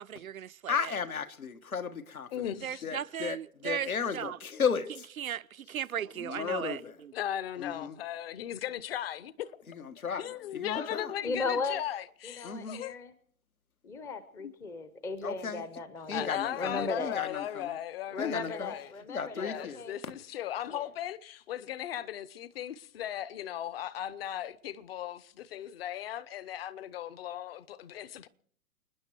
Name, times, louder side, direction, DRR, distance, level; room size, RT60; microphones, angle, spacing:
voice 1, 0.0-0.9 2.6-4.4 5.2-7.1, right 9 dB, 75° right, 0.6 m, -37 dB
voice 2, 0.7-2.5 2.8-5.1 6.2-6.9 7.6-8.0 9.7-10.3 10.5-11.1 12.4-12.8 15.2-15.6 16.1-17.7 18.2-18.7 19.1-19.8, left 6 dB, 80° left, 1.5 m, -34 dB
voice 3, 2.3-2.8 7.1-9.6 10.0-13.0 14.4-14.5 16.1-18.9 19.3-28.3, left 11 dB, 45° left, 0.9 m, -37 dB
voice 4, 10.7-11.8 12.2-13.1 13.8-17.2 18.1-20.0 20.7-20.9, left 3 dB, 5° left, 0.6 m, -37 dB
29.5 x 10.0 x 4.5 m
figure-of-eight pair, 120°, 42 cm